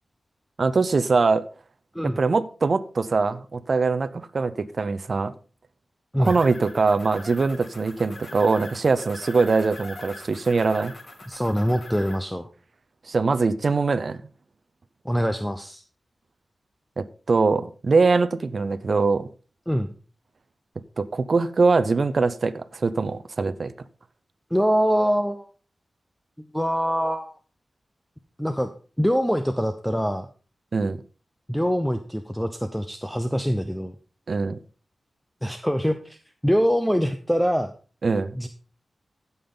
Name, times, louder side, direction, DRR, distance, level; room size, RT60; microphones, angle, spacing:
voice 1, 0.6-1.4 2.0-5.3 6.2-10.9 13.1-14.2 17.0-19.3 21.0-23.7 30.7-31.0 34.3-34.6 38.0-38.3, right 4 dB, 55° right, 0.6 m, -22 dB
sound 1, 6.2-12.2, left 2 dB, 45° left, 2.6 m, -42 dB
voice 2, 11.3-12.5 15.0-15.8 19.7-19.9 24.5-25.5 26.4-27.4 28.4-28.7 29.0-30.3 31.5-34.0 35.4-36.2 36.4-37.7 38.3-38.5, equal, 5° left, 0.7 m, -24 dB
15.5 x 5.5 x 3.9 m
wide cardioid pair, 85°, 0 cm